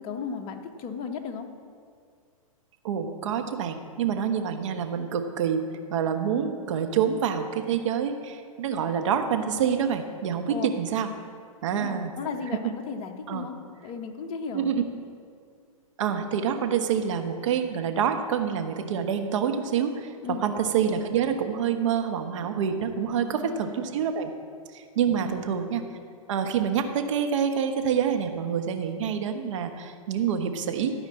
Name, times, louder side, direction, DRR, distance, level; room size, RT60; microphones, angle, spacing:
voice 1, 0.0-1.5 10.5-10.7 11.7-14.7 20.2-20.4 23.1-23.8 25.1-25.4, left 5 dB, 30° left, 4 dB, 1.2 m, -36 dB
voice 2, 2.8-5.6 5.9-11.1 11.6-12.1 12.5-12.7 13.3-13.5 14.5-14.8 16.0-20.1 20.4-24.3 24.7-25.8 26.3-30.9, right 7 dB, 60° right, 6 dB, 1.2 m, -27 dB
14.0 x 5.0 x 7.9 m, 2.2 s
hypercardioid pair, 125°, 18 cm